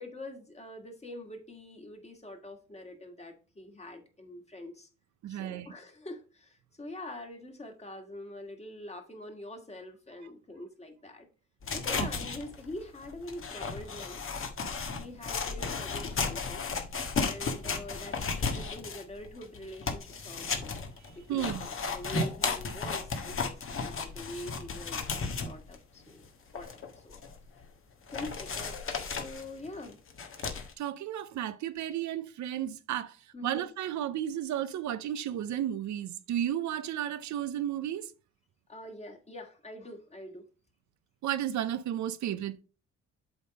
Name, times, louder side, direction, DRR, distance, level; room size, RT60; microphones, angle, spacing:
voice 1, 0.0-4.9 5.3-11.3 11.7-14.2 15.0-16.6 17.2-20.7 21.1-26.2 26.5-27.2 28.1-28.8 29.1-30.0 33.3-33.7 38.7-40.4, left 1 dB, 20° left, 2.0 m, -44 dB
voice 2, 5.2-5.7 12.0-12.1 21.3-21.7 30.4-38.1 41.2-42.6, right 11 dB, 70° right, 0.7 m, -33 dB
sound 1, 11.6-25.8 26.2-26.3 26.6-27.6 28.1-30.7, left 4 dB, 45° left, 1.5 m, -34 dB
8.0 x 3.7 x 4.8 m
cardioid pair, 90°, 30 cm